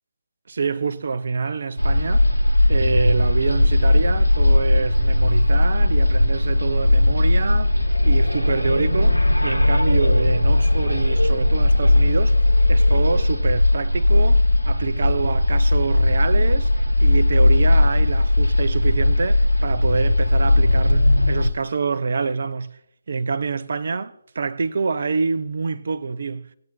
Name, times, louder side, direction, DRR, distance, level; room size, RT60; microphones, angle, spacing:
voice 1, 0.5-2.3 2.7-7.8 8.0-12.4 12.7-16.7 17.0-22.8 23.1-26.5, right 4 dB, 50° right, 0.6 m, -26 dB
sound 1, 1.8-21.5, left 1 dB, 90° right, 1.0 m, -18 dB
18.5 x 8.8 x 2.7 m
figure-of-eight pair, 145°, 0 cm